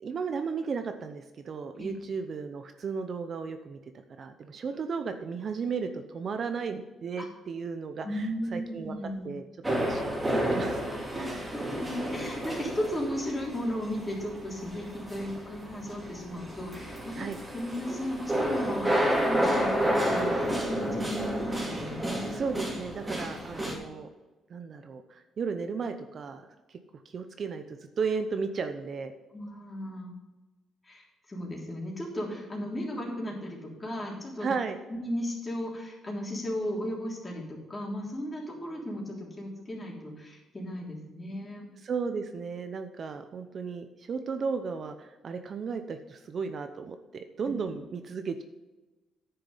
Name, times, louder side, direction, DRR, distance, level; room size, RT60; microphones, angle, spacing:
voice 1, 0.0-8.9 9.2-10.8 11.1-11.5 17.2-17.4 22.3-24.1 24.5-26.8 27.1-29.1 34.4-34.8 41.8-48.4, right 5 dB, 45° right, 7 dB, 0.8 m, -35 dB
voice 2, 8.0-9.3 11.2-17.3 17.5-22.4 29.3-30.1 30.8-34.5 34.9-41.7, equal, 20° left, -2 dB, 3.4 m, -35 dB
sound 1, 9.6-23.7, equal, 15° right, 2.7 m, -31 dB
10.0 x 6.7 x 5.6 m, 1.1 s
cardioid pair, 115°, 0 cm